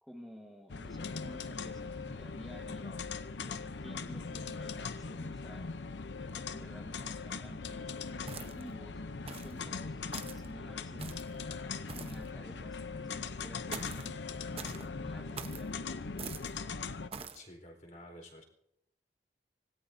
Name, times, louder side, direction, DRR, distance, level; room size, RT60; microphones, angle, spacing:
voice 1, 0.0-3.0 3.4-5.7 6.2-7.9 8.3-9.0 9.3-11.2 11.6-14.2 14.6-15.7, equal, ahead, 0 dB, 1.4 m, -52 dB
sound 1, 0.7-17.1, left 4 dB, 90° left, 0.7 m, -40 dB
sound 2, 8.3-8.7 9.3-9.6 10.1-10.5 11.0-11.3 11.9-12.3 13.7-14.1 14.6-14.9 15.4-15.7 16.2-16.5 17.1-17.4, right 5 dB, 35° right, 0.9 m, -43 dB
voice 2, 17.3-18.4, left 1 dB, 45° left, 1 dB, 4.2 m, -51 dB
25.5 x 18.5 x 2.7 m, 0.76 s
head